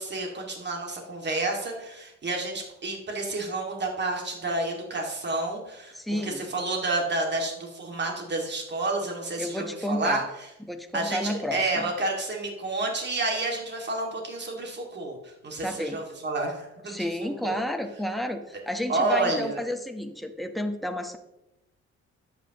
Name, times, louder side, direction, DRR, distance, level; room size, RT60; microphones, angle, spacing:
voice 1, 0.0-10.2 10.9-17.6 18.9-19.6, right 2 dB, 35° right, 0 dB, 2.2 m, -30 dB
voice 2, 5.9-6.4 9.4-10.2 10.7-11.9 15.6-16.0 16.9-21.2, left 1 dB, ahead, 4 dB, 1.0 m, -31 dB
11.0 x 8.4 x 3.0 m, 0.92 s
cardioid pair, 90°, 30 cm